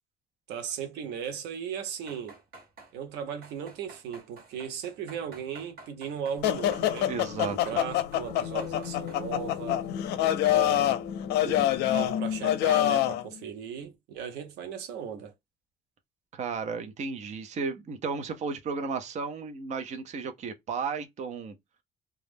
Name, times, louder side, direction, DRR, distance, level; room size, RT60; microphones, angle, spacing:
voice 1, 0.5-2.4 2.9-7.1 7.5-9.9 10.5-11.0 11.4-15.3, right 7 dB, 90° right, 0.7 m, -37 dB
sound 1, 2.0-2.9 3.4-9.3 9.6-10.0 10.4-10.5, right 3 dB, 60° right, 1.3 m, -50 dB
sound 2, 6.4-13.2, left 12 dB, 80° left, 0.5 m, -26 dB
voice 2, 7.1-7.6 16.3-21.5, right 5 dB, 45° right, 0.6 m, -34 dB
2.3 x 2.0 x 3.2 m
cardioid pair, 110°, 17 cm